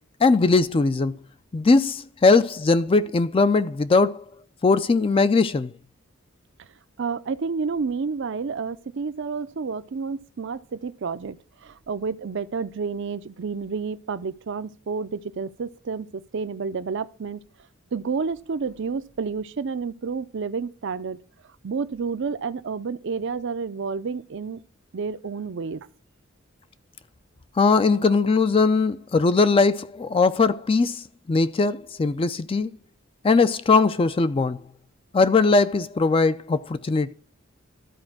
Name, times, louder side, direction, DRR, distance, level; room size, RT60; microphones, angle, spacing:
voice 1, 0.2-1.2 1.5-4.2 4.6-5.7 27.6-32.7 33.2-34.6 35.1-37.1, left 4 dB, 25° left, 0.4 m, -20 dB
voice 2, 7.0-17.4 17.9-21.2 21.6-24.6 24.9-25.9, right 5 dB, 60° right, 0.5 m, -30 dB
13.0 x 4.3 x 6.1 m
head